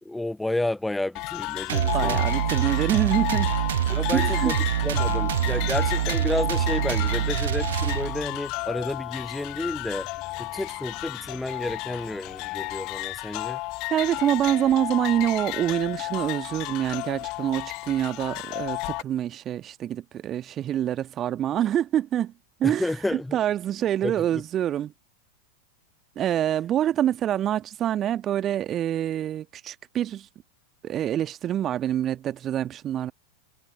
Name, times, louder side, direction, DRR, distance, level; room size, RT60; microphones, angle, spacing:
voice 1, 0.0-2.3 3.9-10.1 10.4-13.6 22.6-23.4 24.0-24.4, left 2 dB, 5° left, 0.5 m, -31 dB
sound 1, 1.2-19.0, left 24 dB, 40° left, 0.8 m, -32 dB
sound 2, 1.7-8.4, right 12 dB, 60° right, 0.9 m, -25 dB
voice 2, 1.8-3.5 4.1-4.5 13.9-22.3 22.6-22.8 23.1-24.9 26.1-30.3 30.8-33.1, right 11 dB, 30° right, 1.5 m, -26 dB
sound 3, 5.3-13.4, left 7 dB, 20° left, 4.7 m, -49 dB
figure-of-eight pair, 90°, 0 cm